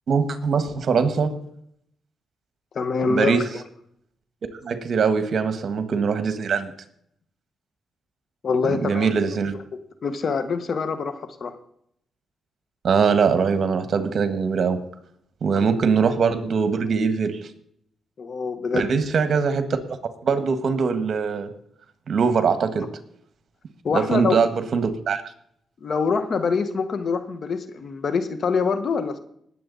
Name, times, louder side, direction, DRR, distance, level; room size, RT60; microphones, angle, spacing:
voice 1, 0.1-1.3 3.1-3.4 4.6-6.7 8.7-9.5 12.8-14.8 15.4-17.4 18.7-19.7 20.2-21.5 22.1-22.9 23.9-25.2, right 5 dB, 60° right, 10 dB, 1.5 m, -22 dB
voice 2, 2.7-3.4 8.4-9.1 10.0-11.1 11.4-11.5 15.5-15.7 18.2-18.9 23.8-24.4 25.8-29.2, left 5 dB, 55° left, 10 dB, 1.4 m, -24 dB
19.0 x 7.7 x 4.1 m, 0.71 s
cardioid pair, 80°, 0 cm